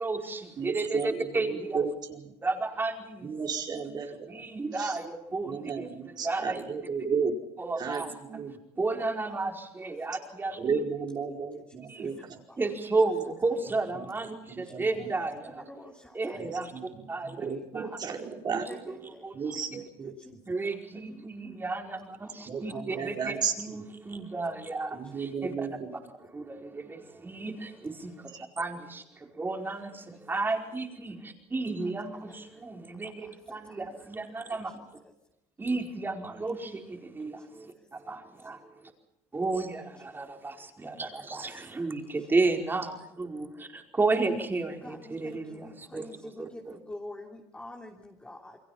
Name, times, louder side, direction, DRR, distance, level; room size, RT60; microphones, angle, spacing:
voice 1, 0.0-1.8 2.4-3.3 3.7-3.8 4.3-5.9 6.2-6.6 7.6-8.1 8.8-10.6 11.9-12.1 12.6-15.5 16.1-16.7 17.1-17.4 17.7-17.9 18.7-19.3 20.5-25.7 26.3-28.1 28.6-29.0 29.4-34.7 35.6-37.7 38.1-38.6 39.3-46.1 46.4-46.7, right 3 dB, 20° right, 3 dB, 4.8 m, -32 dB
voice 2, 0.6-2.3 3.2-4.4 4.7-5.0 5.4-7.4 7.8-8.5 10.6-12.4 14.5-15.3 16.3-18.7 19.3-20.1 22.5-23.8 24.9-25.9 28.3-28.4, right 5 dB, 40° right, 2 dB, 4.9 m, -34 dB
voice 3, 9.0-9.4 10.1-10.2 10.5-10.6 11.5-11.6 12.5-12.6 14.7-14.8 15.4-16.6 17.4-18.0 18.7-19.2 20.0-20.4 20.9-21.3 22.2-22.3 22.7-23.2 32.0-32.3 33.2-34.1 37.2-37.3 44.7-48.6, left 1 dB, 10° left, -1 dB, 3.4 m, -48 dB
29.5 x 22.5 x 5.8 m, 0.86 s
cardioid pair, 110°, 11 cm